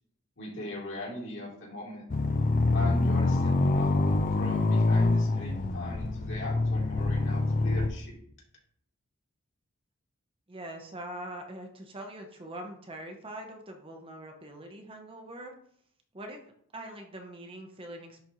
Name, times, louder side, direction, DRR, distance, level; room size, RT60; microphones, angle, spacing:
voice 1, 0.4-2.0 2.7-4.0 4.4-8.2, left 1 dB, 55° left, -4 dB, 2.7 m, -39 dB
sound 1, 2.1-7.9, left 2 dB, 40° left, 0.5 m, -25 dB
voice 2, 10.5-15.5 16.1-16.4 16.7-18.3, right 1 dB, 25° right, 3 dB, 0.8 m, -43 dB
10.5 x 4.1 x 3.0 m, 0.66 s
head